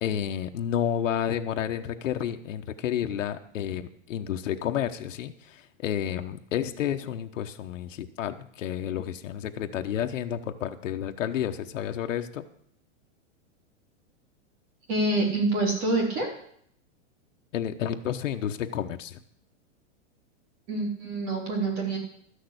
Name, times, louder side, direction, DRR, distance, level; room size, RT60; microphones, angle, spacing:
voice 1, 0.0-12.4 17.5-19.2, left 9 dB, 80° left, 6 dB, 1.2 m, -30 dB
voice 2, 14.9-16.3 20.7-22.0, right 2 dB, 25° right, 0 dB, 3.1 m, -26 dB
13.0 x 6.6 x 8.1 m, 0.66 s
supercardioid pair, 180°, 37 cm